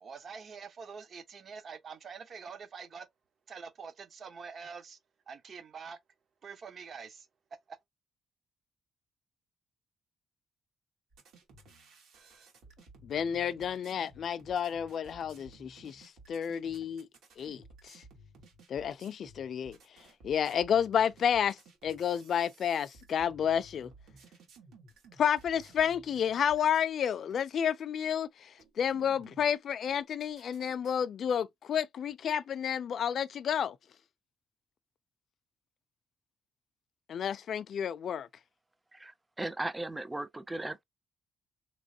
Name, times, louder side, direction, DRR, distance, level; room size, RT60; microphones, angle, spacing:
voice 1, 0.0-3.1 3.5-5.0 5.3-6.0 6.4-7.3 7.7-7.8, right 5 dB, 50° right, 0.6 m, -45 dB
sound 1, 11.1-26.9 27.3-27.4 28.1-28.2 28.6-29.5 29.9-30.9, right 3 dB, 80° right, 1.5 m, -57 dB
voice 2, 13.0-17.1 17.4-18.0 18.7-19.8 20.2-21.6 21.8-23.9 25.2-28.5 28.8-33.8 37.1-38.3, left 8 dB, 60° left, 0.3 m, -30 dB
voice 3, 38.9-40.8, right 2 dB, 15° right, 0.4 m, -37 dB
3.1 x 3.0 x 2.7 m
cardioid pair, 90°, 0 cm